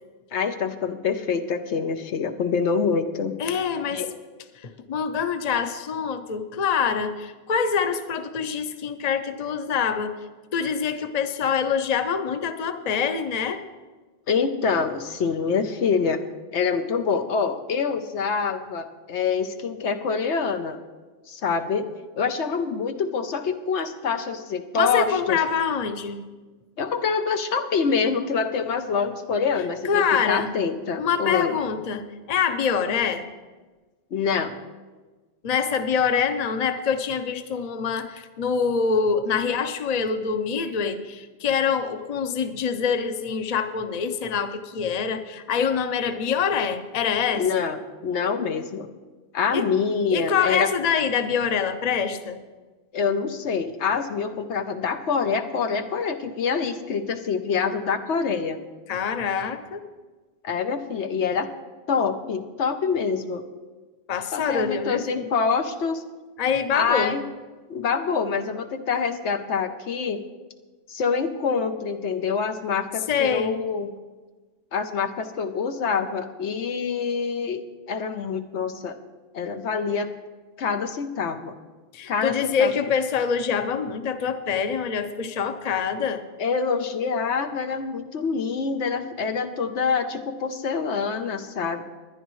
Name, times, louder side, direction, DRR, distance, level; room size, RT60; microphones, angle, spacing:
voice 1, 0.3-3.4 3.9-4.2 14.3-16.2 16.5-20.8 21.3-21.9 22.2-25.4 26.8-31.6 34.1-34.5 47.3-48.9 49.3-50.7 52.9-58.6 60.4-61.5 61.9-63.5 64.3-66.0 66.7-67.2 67.7-70.2 70.9-73.9 74.7-79.0 79.3-80.1 80.6-81.5 82.1-82.9 86.4-91.8, left 5 dB, 85° left, 7 dB, 1.1 m, -26 dB
voice 2, 3.4-4.0 4.6-10.1 10.5-13.6 24.7-26.2 29.8-30.5 31.0-33.2 35.4-47.6 49.5-49.6 50.1-52.4 58.9-59.8 64.1-65.2 66.4-67.2 73.1-73.6 81.9-86.2, left 6 dB, 40° left, 9 dB, 0.7 m, -25 dB
21.0 x 10.0 x 3.1 m, 1.3 s
omnidirectional pair, 1.1 m